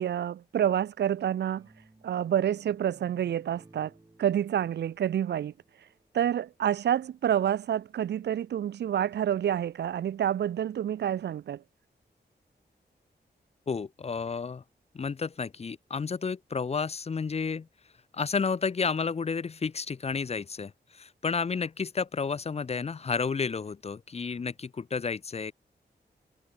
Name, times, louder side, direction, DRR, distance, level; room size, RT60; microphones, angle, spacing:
voice 1, 0.0-1.7 2.0-3.9 4.2-5.5 6.1-11.6, right 10 dB, 75° right, 0.4 m, -28 dB
sound 1, 1.6-6.7, right 2 dB, 20° right, 3.7 m, -59 dB
voice 2, 13.7-14.6 14.9-17.7 18.1-25.5, left 5 dB, 35° left, 0.5 m, -31 dB
wide cardioid pair, 115°, 18 cm